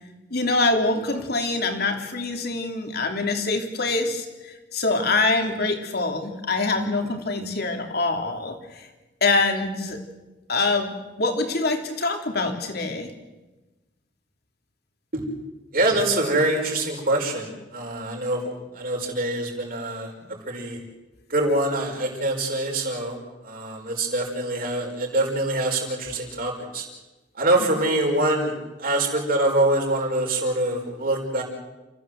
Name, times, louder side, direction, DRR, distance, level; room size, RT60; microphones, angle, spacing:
voice 1, 0.3-8.9 9.2-10.0 10.5-10.9 11.2-13.1 27.6-27.7, left 3 dB, 60° left, 4 dB, 3.2 m, -25 dB
voice 2, 15.7-20.1 20.5-20.8 21.3-23.2 23.4-26.9 27.4-28.5 28.8-31.4, right 1 dB, 50° right, 1 dB, 5.7 m, -24 dB
29.5 x 15.0 x 7.8 m, 1.1 s
head